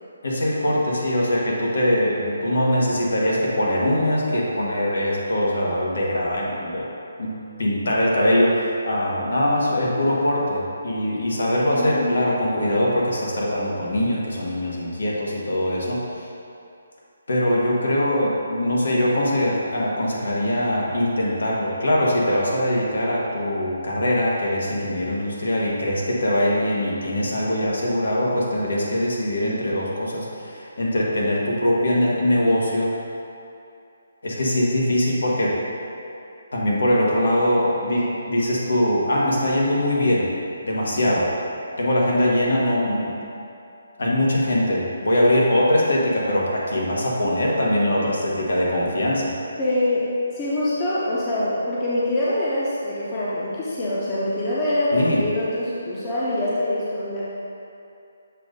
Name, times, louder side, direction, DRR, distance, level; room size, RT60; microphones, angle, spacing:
voice 1, 0.2-6.9 7.2-16.2 17.3-32.9 34.2-35.6 36.5-40.3 40.6-41.3 41.8-43.2 44.0-49.3 54.9-55.2, left 1 dB, 80° left, -4 dB, 1.4 m, -22 dB
voice 2, 11.7-12.2 49.6-50.1 50.3-57.2, left 1 dB, 20° left, -8 dB, 0.7 m, -24 dB
7.3 x 2.6 x 5.1 m, 2.6 s
hypercardioid pair, 165°, 0 cm